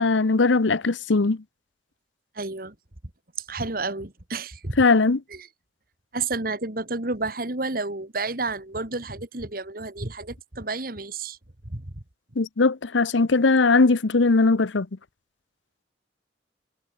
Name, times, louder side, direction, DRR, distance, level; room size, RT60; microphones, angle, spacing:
voice 1, 0.0-1.4 4.8-5.2 12.4-14.9, left 3 dB, 85° left, 0.8 m, -19 dB
voice 2, 2.4-2.7 3.4-4.8 5.3-5.5 6.1-11.4 11.7-11.9, right 3 dB, 50° right, 2.3 m, -31 dB
head